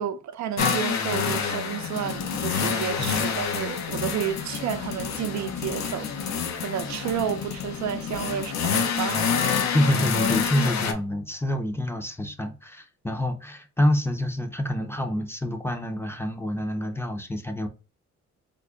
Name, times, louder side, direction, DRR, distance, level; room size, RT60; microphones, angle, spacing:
voice 1, 0.0-9.3, right 9 dB, 70° right, 0.6 m, -31 dB
sound 1, 0.6-10.9, left 6 dB, 65° left, 0.8 m, -27 dB
voice 2, 9.6-17.7, left 1 dB, 10° left, 0.6 m, -27 dB
3.6 x 2.1 x 3.6 m
cardioid pair, 90°, 30 cm